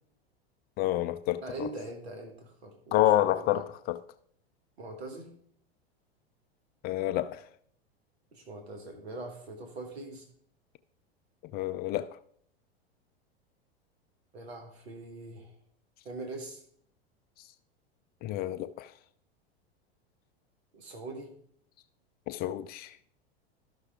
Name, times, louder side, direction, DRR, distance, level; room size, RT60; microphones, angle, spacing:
voice 1, 0.8-1.4 2.9-4.0 6.8-7.4 11.5-12.2 18.2-18.9 22.3-23.0, left 13 dB, 30° left, 0.4 m, -28 dB
voice 2, 1.4-3.7 4.8-5.3 8.3-10.3 14.3-15.5 16.0-16.6 20.7-21.3, right 2 dB, 80° right, 1.6 m, -42 dB
12.5 x 6.0 x 3.5 m
hypercardioid pair, 95°, 31 cm